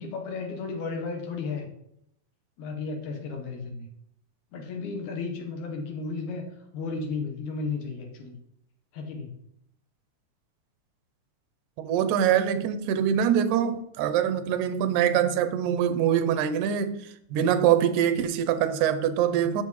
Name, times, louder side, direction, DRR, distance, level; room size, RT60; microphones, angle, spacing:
voice 1, 0.0-1.7 2.6-3.9 4.5-6.4 6.7-8.3 8.9-9.4, left 4 dB, 85° left, 2.6 m, -33 dB
voice 2, 11.8-17.0 17.3-19.6, right 9 dB, 85° right, 2.1 m, -24 dB
7.6 x 7.1 x 3.1 m
omnidirectional pair, 3.4 m